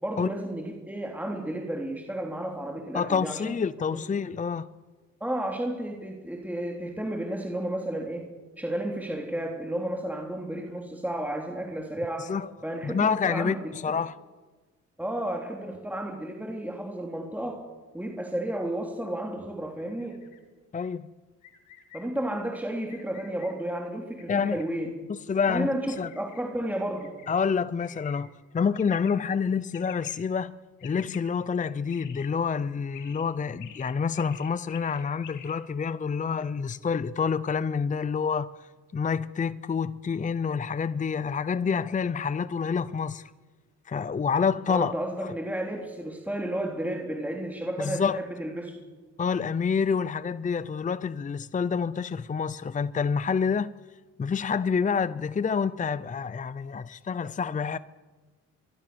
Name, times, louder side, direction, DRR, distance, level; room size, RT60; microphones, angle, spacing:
voice 1, 0.0-3.5 3.9-4.0 5.2-8.3 8.6-12.3 12.6-13.7 15.0-17.6 17.9-20.2 21.9-24.9 25.5-27.2 44.7-48.8, right 1 dB, 5° right, 3.3 m, -32 dB
voice 2, 2.9-4.7 12.2-12.5 12.8-14.2 20.7-21.1 24.3-24.6 25.1-25.7 26.0-26.1 27.3-28.3 28.5-30.5 30.8-38.5 38.9-43.3 43.9-44.9 45.2-45.3 47.8-48.2 49.2-53.7 54.2-57.8, left 6 dB, 25° left, 0.7 m, -28 dB
sound 1, 19.7-20.4 21.4-22.1 22.9-23.5 24.2-24.6 25.9-26.4 27.0-27.3 27.8-28.2 28.7-29.1 29.7-30.1 30.8-31.2 31.9-32.3 32.9-33.2 33.6-35.5, left 10 dB, 90° left, 2.8 m, -48 dB
23.5 x 23.0 x 7.0 m
cardioid pair, 90°, 30 cm